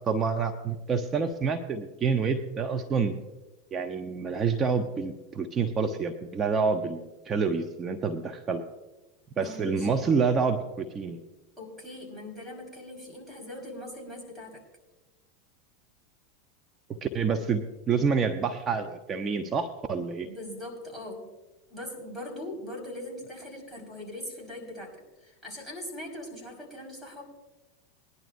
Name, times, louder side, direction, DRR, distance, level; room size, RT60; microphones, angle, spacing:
voice 1, 0.1-3.2 3.7-8.6 9.4-11.2 17.0-20.3, right 5 dB, 30° right, 5 dB, 0.9 m, -28 dB
voice 2, 9.3-9.9 11.6-14.6 20.2-21.4 21.7-27.2, left 1 dB, 5° right, -1 dB, 5.3 m, -41 dB
20.5 x 11.0 x 2.7 m, 1.1 s
hypercardioid pair, 100°, 0 cm